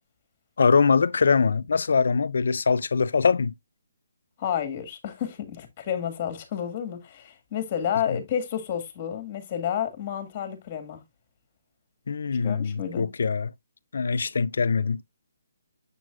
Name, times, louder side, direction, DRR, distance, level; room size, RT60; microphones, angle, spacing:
voice 1, 0.6-3.5 8.1-8.2 12.1-13.5 13.9-15.0, left 5 dB, 70° left, 0.5 m, -23 dB
voice 2, 4.4-11.0 12.4-13.1, left 9 dB, 30° left, 2.0 m, -30 dB
7.6 x 6.1 x 2.4 m
hypercardioid pair, 155°, 0 cm